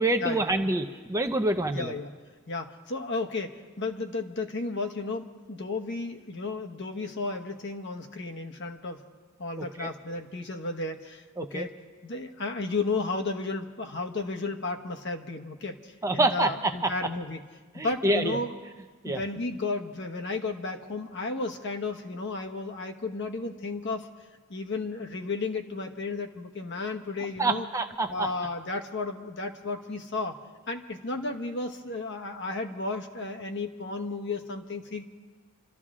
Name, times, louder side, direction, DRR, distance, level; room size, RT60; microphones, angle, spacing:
voice 1, 0.0-1.9 9.6-9.9 11.4-11.7 16.0-16.9 17.7-18.4 19.0-19.2 27.4-28.3, right 2 dB, 15° right, 6 dB, 0.6 m, -27 dB
voice 2, 1.7-2.1 2.5-9.0 9.4-11.7 12.0-17.4 17.7-18.5 19.0-24.1 24.5-27.7 28.1-30.4 30.7-35.0, left 3 dB, 55° left, 4 dB, 1.1 m, -33 dB
27.5 x 13.5 x 3.7 m, 1.4 s
head